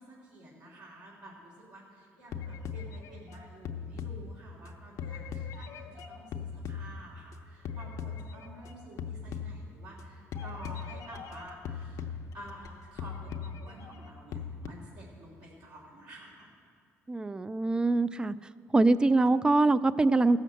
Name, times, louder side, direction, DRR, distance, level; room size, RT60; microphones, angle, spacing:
voice 1, 0.0-16.5, right 1 dB, 75° right, -6 dB, 3.2 m, -50 dB
sound 1, 2.3-4.7 5.0-7.3 7.7-8.7 9.0-10.0 10.3-12.7 13.0-14.7, left 6 dB, 70° left, 0.8 m, -39 dB
voice 2, 17.1-18.3 18.7-20.4, right 2 dB, 15° right, 15 dB, 0.4 m, -24 dB
15.0 x 6.5 x 7.6 m, 2.2 s
cardioid pair, 105°, 6 cm